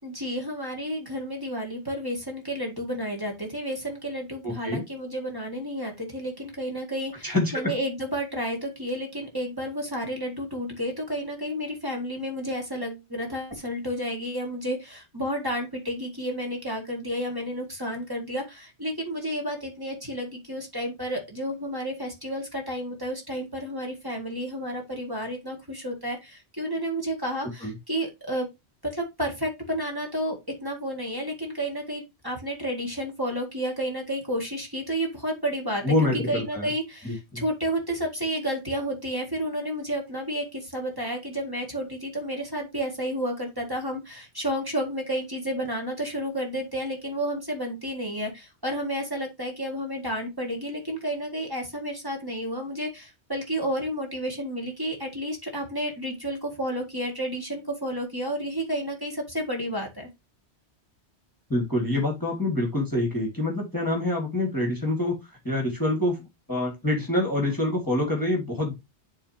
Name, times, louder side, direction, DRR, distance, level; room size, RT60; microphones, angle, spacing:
voice 1, 0.0-28.5 28.8-60.1, equal, 20° right, 0 dB, 2.0 m, -31 dB
voice 2, 4.4-4.8 7.2-7.7 27.6-27.7 35.8-36.7 37.0-37.4 61.5-65.2 65.4-66.2 66.5-68.7, left 1 dB, 20° left, 0 dB, 2.1 m, -26 dB
11.0 x 3.7 x 2.8 m, 0.22 s
omnidirectional pair, 1.1 m